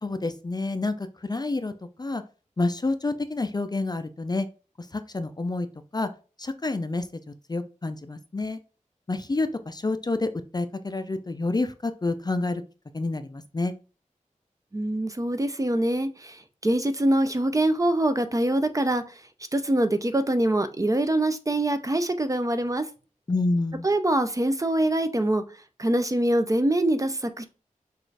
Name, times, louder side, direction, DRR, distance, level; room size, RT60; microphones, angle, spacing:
voice 1, 0.0-1.7 2.0-2.2 2.6-4.5 4.8-5.7 5.9-6.1 6.4-7.2 7.5-8.6 9.1-12.6 12.9-13.7 23.3-23.9, left 2 dB, 30° left, 0.4 m, -28 dB
voice 2, 14.7-19.2 19.5-22.9 23.8-25.4 25.8-27.4, right 1 dB, 25° right, 0.5 m, -24 dB
6.1 x 2.5 x 3.3 m
wide cardioid pair, 80°, 13 cm